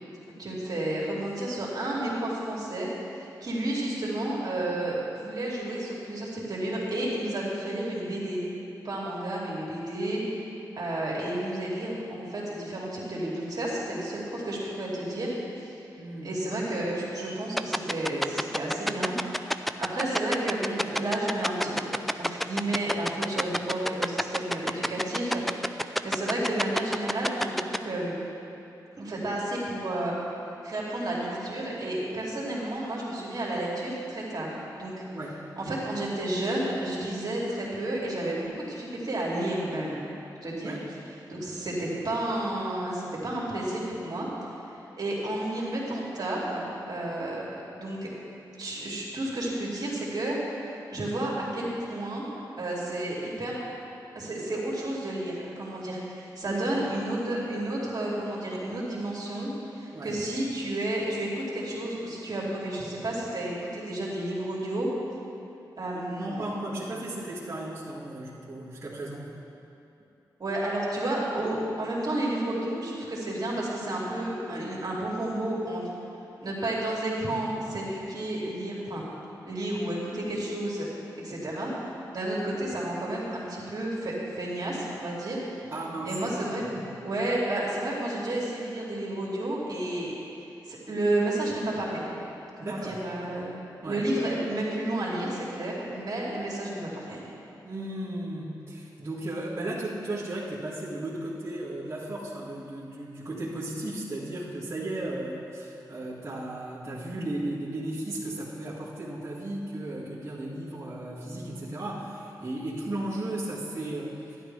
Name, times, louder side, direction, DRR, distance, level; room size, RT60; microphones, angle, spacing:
voice 1, 0.4-2.9 3.2-8.4 8.8-10.2 10.8-15.7 16.2-19.1 19.4-28.2 29.0-30.1 30.6-35.0 35.6-40.1 40.4-40.8 41.3-44.3 45.0-48.1 48.6-50.4 50.9-52.2 52.6-53.6 54.1-59.5 59.8-64.9 65.8-66.5 70.4-75.8 76.4-79.0 79.5-80.9 81.2-81.7 82.1-85.5 86.0-86.6 87.0-90.1 90.7-92.2 92.6-93.5 93.8-97.3, right 1 dB, 55° right, -5 dB, 2.7 m, -31 dB
voice 2, 16.0-16.3 35.1-35.4 40.5-40.8 56.4-56.6 59.9-60.1 65.9-69.3 85.7-86.2 86.5-86.8 92.6-93.0 93.8-94.1 97.6-114.4, right 1 dB, 35° right, -10 dB, 2.0 m, -35 dB
sound 1, 17.6-27.8, equal, ahead, 0.4 m, -26 dB
12.0 x 11.0 x 3.4 m, 2.8 s
cardioid pair, 50°, 8 cm